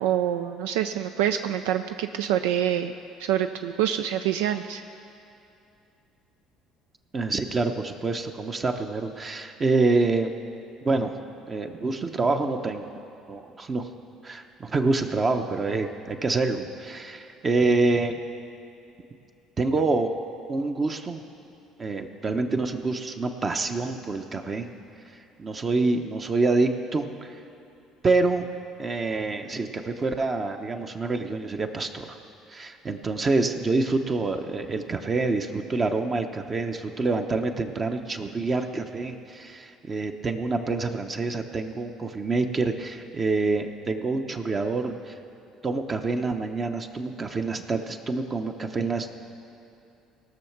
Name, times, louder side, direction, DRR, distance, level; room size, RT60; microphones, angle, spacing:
voice 1, 0.0-2.9 3.2-4.8, right 11 dB, 85° right, 8 dB, 0.4 m, -26 dB
voice 2, 7.1-10.3 10.8-11.2 11.5-12.8 13.3-13.9 14.2-18.2 19.6-20.1 20.5-21.2 21.8-24.7 25.1-27.4 28.0-28.5 28.8-32.2 32.5-45.2 45.6-49.1, right 3 dB, 35° right, 5 dB, 0.9 m, -26 dB
17.5 x 6.4 x 6.0 m, 2.7 s
supercardioid pair, 80°, 0 cm